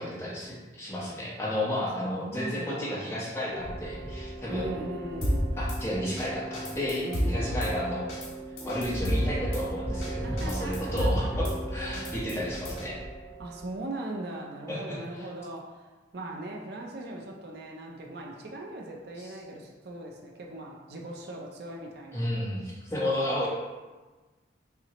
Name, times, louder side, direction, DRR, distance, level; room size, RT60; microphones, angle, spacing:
voice 1, 0.0-4.7 5.6-8.1 8.6-13.0 14.7-15.3 19.2-19.3 22.1-23.5, left 1 dB, 15° left, -7 dB, 0.8 m, -32 dB
voice 2, 2.0-3.2 4.5-5.6 7.0-7.6 10.2-11.3 13.4-22.3, right 1 dB, 55° right, 0 dB, 0.5 m, -39 dB
sound 1, 3.5-13.7, right 1 dB, 15° right, 0.8 m, -37 dB
Drum kit / Snare drum, 5.2-5.8 6.2-6.3 6.5-7.7 8.1-8.3 8.6-9.6 10.0-10.1 10.4-11.5 11.9-12.9, equal, 90° left, 1.2 m, -30 dB
5.7 x 2.1 x 2.8 m, 1.3 s
head